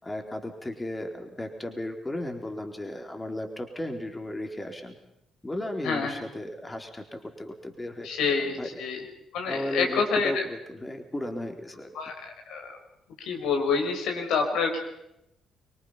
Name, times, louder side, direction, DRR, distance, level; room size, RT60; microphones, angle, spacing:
voice 1, 0.0-5.0 5.4-8.7 9.5-11.9, left 1 dB, 20° left, 4 dB, 4.0 m, -35 dB
voice 2, 5.8-6.2 8.0-9.0 9.3-10.4 11.9-12.1 12.5-12.8 13.2-14.8, left 5 dB, 70° left, 2 dB, 4.9 m, -27 dB
25.0 x 23.5 x 5.8 m, 0.83 s
hypercardioid pair, 40°, 0 cm